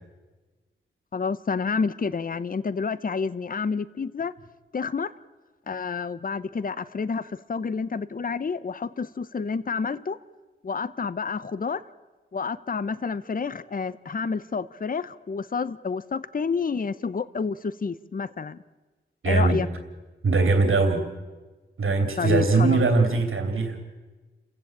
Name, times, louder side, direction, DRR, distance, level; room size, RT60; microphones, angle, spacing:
voice 1, 1.1-4.3 4.7-5.1 5.7-10.2 10.6-11.8 12.3-18.6 19.3-19.7 22.2-22.8, left 5 dB, 45° left, 17 dB, 0.7 m, -29 dB
voice 2, 19.2-19.6 20.2-21.0 21.8-23.8, right 3 dB, 80° right, 6 dB, 2.8 m, -21 dB
29.0 x 15.5 x 8.7 m, 1.2 s
wide cardioid pair, 100°, 21 cm